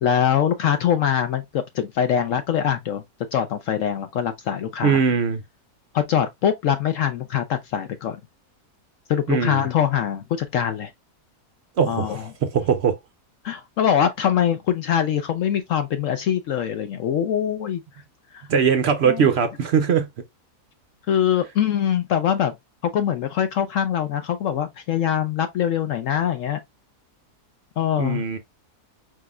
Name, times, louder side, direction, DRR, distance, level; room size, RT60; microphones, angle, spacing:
voice 1, 0.0-3.0 3.3-5.0 5.9-8.2 9.1-10.9 11.9-12.2 13.4-17.8 18.3-18.5 19.0-19.3 21.1-22.5 22.8-26.6 27.8-28.2, left 9 dB, 65° left, 0.8 m, -23 dB
voice 2, 4.8-5.4 9.3-9.6 11.8-13.0 18.5-20.1 28.0-28.4, right 6 dB, 65° right, 0.6 m, -21 dB
4.7 x 3.7 x 2.3 m
omnidirectional pair, 1.7 m